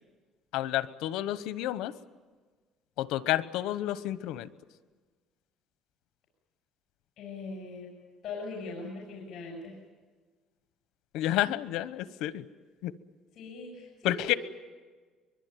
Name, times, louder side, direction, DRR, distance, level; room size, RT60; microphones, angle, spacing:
voice 1, 0.5-1.9 3.0-4.5 11.1-12.4 12.8-12.9 14.0-14.3, left 14 dB, 75° left, 15 dB, 1.0 m, -30 dB
voice 2, 7.2-7.9 8.2-9.7 13.3-14.4, left 3 dB, 45° left, -1 dB, 6.5 m, -40 dB
23.5 x 22.5 x 9.3 m, 1.4 s
cardioid pair, 165°, 0 cm